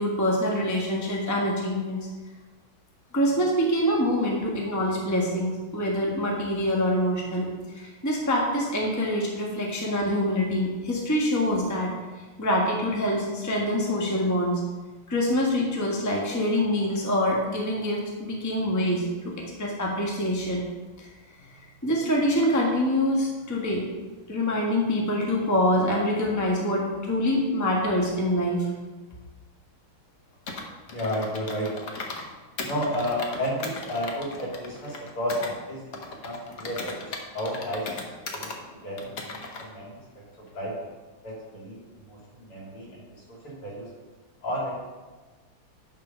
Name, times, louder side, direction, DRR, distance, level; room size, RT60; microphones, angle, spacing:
voice 1, 0.0-2.0 3.1-7.4 7.8-11.9 12.4-14.6 15.1-20.6 21.0-21.1 21.8-23.8 24.3-28.7, equal, 10° left, -2 dB, 1.2 m, -25 dB
Computer keyboard, 30.5-32.3 32.6-35.5 35.9-38.6 39.0-39.7, left 3 dB, 50° left, 1.2 m, -37 dB
voice 2, 30.9-31.8 32.6-36.0 36.2-37.1 37.3-38.5 38.8-40.2 40.5-40.7 41.2-43.9 44.4-44.8, equal, 80° left, -6 dB, 4.2 m, -32 dB
10.0 x 4.8 x 5.6 m, 1.3 s
omnidirectional pair, 2.4 m